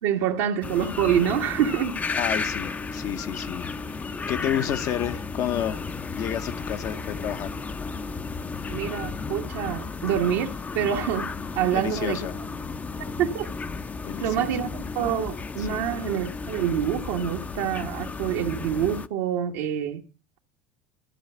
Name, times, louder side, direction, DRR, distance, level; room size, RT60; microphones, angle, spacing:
voice 1, 0.0-2.0 8.7-11.3 11.5-12.3 13.2-13.5 14.2-20.0, right 9 dB, 75° right, 1.4 m, -26 dB
sound 1, 0.6-19.1, left 4 dB, 25° left, 0.6 m, -33 dB
voice 2, 2.1-5.9 6.2-7.5 11.7-12.4 14.0-14.5 15.6-15.8, left 10 dB, 55° left, 0.9 m, -30 dB
12.5 x 4.8 x 7.8 m
hypercardioid pair, 85°, 7 cm